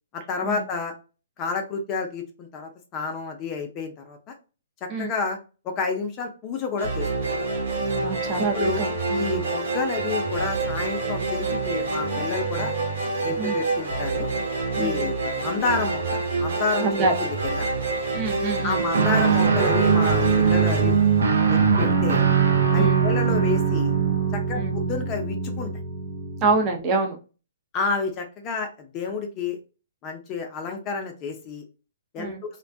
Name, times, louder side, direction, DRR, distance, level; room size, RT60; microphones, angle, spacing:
voice 1, 0.1-0.9 1.4-4.3 5.0-5.4 5.6-7.1 8.4-12.7 13.2-14.3 14.8-16.9 17.2-17.7 18.6-21.0 21.5-22.3 22.7-24.0 24.3-25.7 27.7-29.6 30.0-31.6 32.1-32.3, left 4 dB, 25° left, 4 dB, 0.5 m, -30 dB
sound 1, 6.8-22.0, right 3 dB, 65° right, 1.0 m, -27 dB
voice 2, 7.8-9.4 13.4-13.6 14.8-15.0 16.8-17.1 18.1-18.8 22.8-23.0 24.5-24.7 26.4-27.2 32.2-32.4, right 3 dB, 25° right, 2 dB, 0.6 m, -26 dB
Guitar, 18.9-26.6, right 6 dB, 85° right, 0.6 m, -21 dB
2.4 x 2.2 x 2.6 m, 0.33 s
hypercardioid pair, 150°, 0 cm